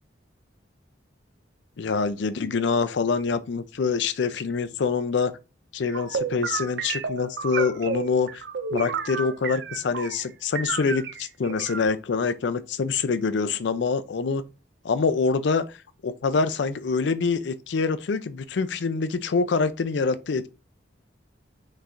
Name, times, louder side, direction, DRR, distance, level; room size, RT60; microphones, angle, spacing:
voice 1, 1.8-5.3 5.7-8.4 8.7-14.4 14.8-15.8 16.0-20.5, left 4 dB, 70° left, 0.4 m, -25 dB
sound 1, 5.9-10.3 10.5-11.9, right 5 dB, 65° right, 0.4 m, -31 dB
5.7 x 3.1 x 2.5 m
head